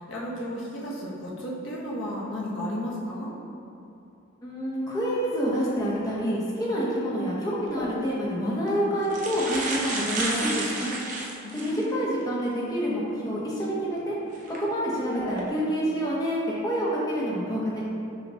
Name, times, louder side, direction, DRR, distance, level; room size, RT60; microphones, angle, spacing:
voice 1, 0.0-3.3 11.4-12.2, equal, 60° left, -5 dB, 0.7 m, -34 dB
voice 2, 4.4-10.9 11.5-14.1 14.5-17.8, equal, 15° left, -7 dB, 0.6 m, -27 dB
sound 1, 7.7-7.9 8.7-8.8 9.0-11.8 12.4-12.5 14.3-14.6 15.2-15.4, right 2 dB, 35° right, 0.4 m, -31 dB
5.7 x 2.1 x 2.7 m, 2.7 s
head